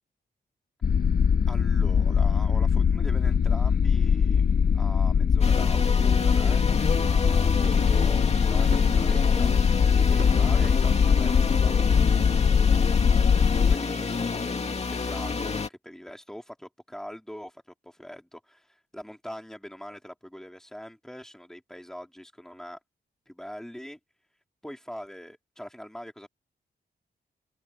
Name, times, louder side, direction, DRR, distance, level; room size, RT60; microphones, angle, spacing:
sound 1, 0.8-13.8, left 6 dB, 60° left, 1.4 m, -22 dB
voice 1, 1.5-4.4 4.7-6.6 7.0-9.5 9.9-12.0 13.1-22.8 23.3-24.0 24.6-26.3, equal, 5° left, 3.9 m, -43 dB
sound 2, 5.4-15.7, left 4 dB, 40° left, 2.4 m, -29 dB
sound 3, 5.7-11.4, right 6 dB, 60° right, 4.4 m, -47 dB
wide cardioid pair, 125°, 17 cm